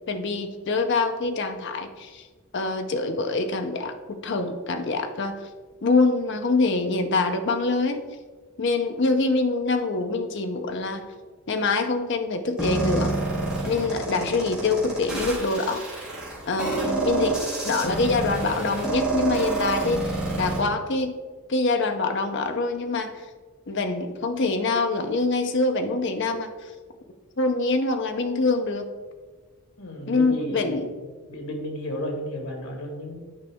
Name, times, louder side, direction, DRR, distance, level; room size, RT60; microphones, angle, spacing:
voice 1, 0.1-2.2 2.5-5.4 5.8-8.0 8.6-11.0 11.5-13.1 13.7-15.8 16.5-21.1 21.5-23.2 23.7-26.7 27.4-28.9 30.1-30.9, left 3 dB, 55° left, 6 dB, 0.6 m, -25 dB
sound 1, 12.6-20.6, right 2 dB, 5° right, 1.7 m, -28 dB
voice 2, 29.8-30.7 31.3-33.2, equal, 85° left, 2 dB, 1.7 m, -33 dB
9.7 x 5.1 x 3.5 m, 1.4 s
head